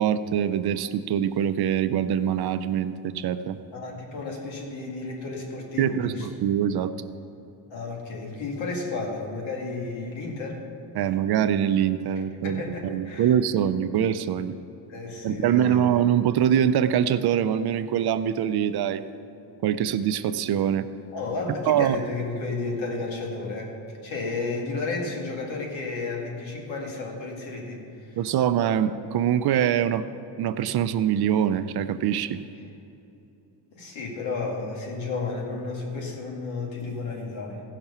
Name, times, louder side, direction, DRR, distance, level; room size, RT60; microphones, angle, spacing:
voice 1, 0.0-3.6 5.8-6.9 11.0-14.6 15.2-19.0 19.6-20.9 21.7-22.0 28.2-30.0 30.4-32.4, right 9 dB, 55° right, 11 dB, 0.6 m, -24 dB
voice 2, 3.7-6.3 7.7-10.6 11.0-11.1 12.4-13.3 14.9-16.0 21.1-23.7 24.0-28.2 33.7-37.6, left 3 dB, 85° left, -1 dB, 2.2 m, -32 dB
15.5 x 5.8 x 5.6 m, 2.8 s
cardioid pair, 120°, 45 cm